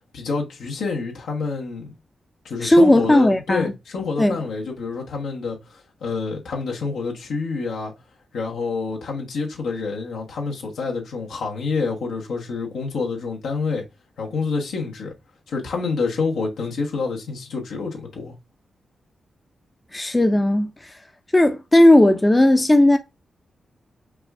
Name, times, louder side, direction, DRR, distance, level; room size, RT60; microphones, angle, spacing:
voice 1, 0.1-1.9 2.4-7.9 8.3-13.8 14.2-15.1 15.5-18.3, left 4 dB, 85° left, 1.3 m, -27 dB
voice 2, 2.6-3.7 4.2-4.3 19.9-20.7 21.3-23.0, left 1 dB, 20° left, 0.7 m, -15 dB
4.8 x 2.5 x 3.5 m
cardioid pair, 55°, 0 cm